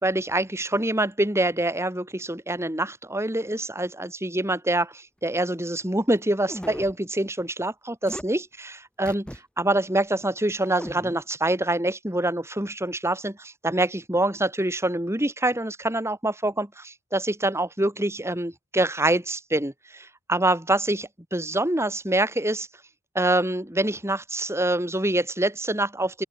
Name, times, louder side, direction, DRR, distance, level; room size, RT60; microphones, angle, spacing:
voice 1, 0.0-9.3 9.6-22.7 23.1-26.2, right 1 dB, 15° right, 3.1 m, -25 dB
sound 1, 6.4-7.0 8.0-8.2 9.0-9.4 9.8-9.9 10.6-11.2, equal, 5° left, 4.8 m, -37 dB
open air
head